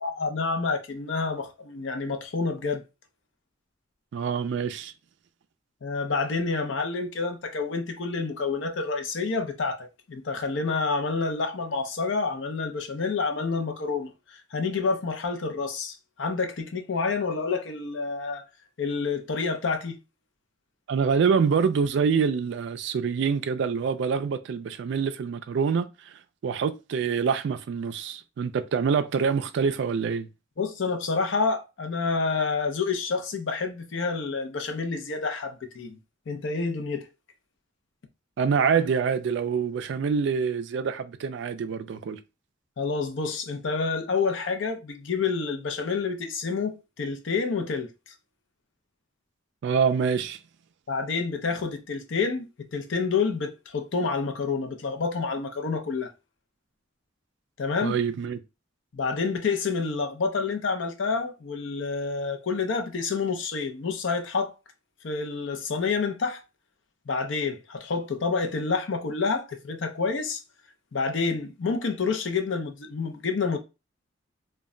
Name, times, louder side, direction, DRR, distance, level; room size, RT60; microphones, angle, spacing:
voice 1, 0.0-2.8 5.8-18.4 18.8-20.0 30.6-36.0 36.3-37.1 42.8-48.1 50.9-56.1 57.6-57.9 58.9-64.5 65.0-66.4 67.1-70.4 70.9-73.6, left 4 dB, 65° left, 0.5 m, -28 dB
voice 2, 4.1-4.9 20.9-26.1 26.4-30.3 38.4-42.2 49.6-50.4 57.8-58.4, right 6 dB, 60° right, 0.3 m, -26 dB
2.2 x 2.1 x 3.6 m
head